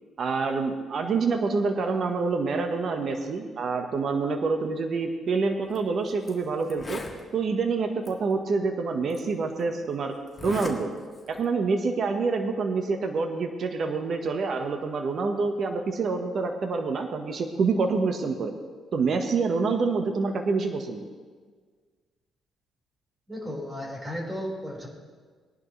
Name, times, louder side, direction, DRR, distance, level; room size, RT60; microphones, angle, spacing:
voice 1, 0.2-7.0 7.3-10.2 10.4-10.9 11.3-18.5 18.9-21.0, right 4 dB, 55° right, 4 dB, 1.4 m, -27 dB
Zipper (clothing), 5.6-5.8 6.3-6.4 6.6-7.2 8.0-8.1 9.1-9.2 10.3-10.8 11.1-11.4, left 3 dB, 25° left, 2.2 m, -38 dB
voice 2, 23.3-24.9, equal, 20° right, -2 dB, 5.0 m, -34 dB
20.5 x 11.0 x 3.3 m, 1.5 s
cardioid pair, 90°, 0 cm